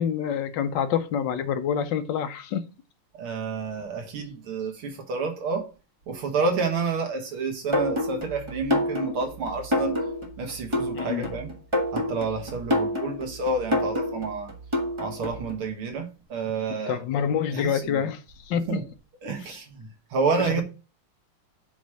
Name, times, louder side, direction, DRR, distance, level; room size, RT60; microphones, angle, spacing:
voice 1, 0.0-2.6 10.9-11.3 16.9-18.8 19.4-19.6 20.4-20.6, left 8 dB, 70° left, 1.2 m, -27 dB
voice 2, 3.1-5.7 6.1-10.0 10.4-11.5 11.9-14.5 15.0-17.0 17.5-18.1 18.7-18.8 19.2-20.6, right 4 dB, 75° right, 2.4 m, -29 dB
sound 1, 7.7-15.5, left 1 dB, 20° right, 1.0 m, -28 dB
8.0 x 3.1 x 6.2 m
omnidirectional pair, 2.4 m